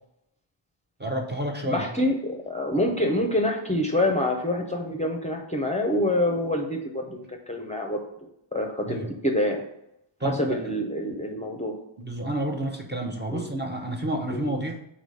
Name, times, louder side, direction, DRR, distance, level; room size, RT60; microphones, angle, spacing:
voice 1, 1.0-1.9 8.9-9.1 10.2-10.6 12.0-14.8, right 1 dB, 20° right, 2 dB, 0.8 m, -30 dB
voice 2, 1.6-8.0 8.5-9.0 9.2-9.6 10.2-11.7 13.3-13.5 14.3-14.5, left 1 dB, 15° left, 2 dB, 0.6 m, -26 dB
4.9 x 4.1 x 5.4 m, 0.80 s
wide cardioid pair, 170°, 47 cm